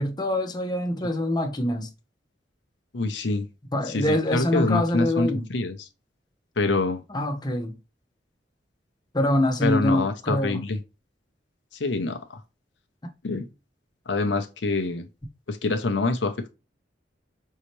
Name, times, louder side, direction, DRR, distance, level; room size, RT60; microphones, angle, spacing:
voice 1, 0.0-1.9 3.7-5.5 7.1-7.7 9.1-10.6, left 1 dB, 25° left, 0.9 m, -25 dB
voice 2, 2.9-3.5 3.9-5.9 6.6-7.0 9.6-10.8 11.8-12.4 13.2-13.5 14.1-15.1 15.5-16.5, left 3 dB, 70° left, 0.7 m, -26 dB
5.6 x 2.8 x 3.1 m
head